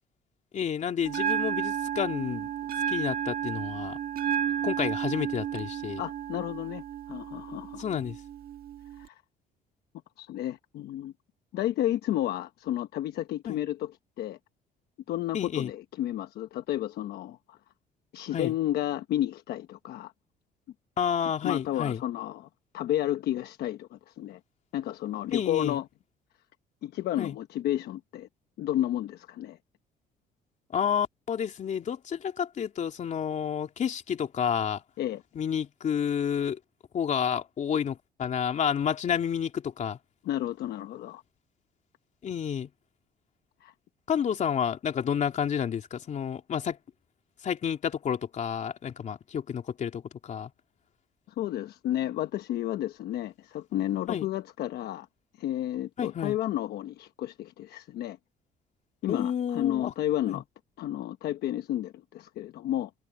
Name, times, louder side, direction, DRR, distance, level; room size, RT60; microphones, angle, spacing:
voice 1, 0.5-2.5 2.9-4.0 4.6-6.0 7.8-8.2 13.4-13.6 15.3-15.7 18.3-18.5 21.0-22.0 25.3-25.8 27.2-27.4 30.7-34.8 35.3-36.6 36.9-40.0 42.2-42.7 44.1-46.8 47.4-50.5 54.1-54.3 56.0-56.4 59.1-59.9 60.3-60.4, left 8 dB, 45° left, 3.1 m, -30 dB
Bell, 1.1-9.1, right 9 dB, 60° right, 2.1 m, -32 dB
voice 2, 6.0-7.8 9.0-9.2 10.2-11.1 11.5-13.9 14.2-14.4 15.1-17.6 18.1-20.1 21.4-22.5 22.7-24.4 24.7-25.8 26.8-28.3 28.6-29.6 35.0-35.2 40.2-41.2 43.6-43.7 51.4-55.1 55.4-58.2 59.0-60.4 60.8-62.9, left 13 dB, 70° left, 1.1 m, -31 dB
cardioid pair, 110°, 17 cm